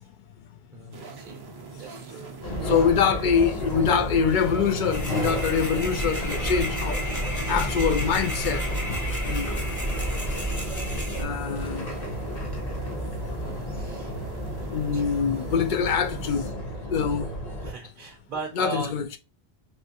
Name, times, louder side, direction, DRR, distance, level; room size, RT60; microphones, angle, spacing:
voice 1, 0.7-1.4 1.7-2.4 11.4-11.8 13.6-14.2 14.9-15.2 17.1-17.2 17.6-18.9, right 4 dB, 60° right, 0.7 m, -39 dB
sound 1, 0.9-16.5, right 5 dB, 35° right, 0.4 m, -43 dB
sound 2, 2.4-17.7, equal, 40° left, 1.1 m, -32 dB
voice 2, 2.7-7.0 7.5-8.6 9.2-9.6 11.2-11.9 14.7-16.5 16.9-17.3 18.6-19.2, left 6 dB, 60° left, 0.6 m, -24 dB
sound 3, 4.9-11.2, equal, 20° left, 0.7 m, -30 dB
3.1 x 3.1 x 2.7 m
omnidirectional pair, 1.0 m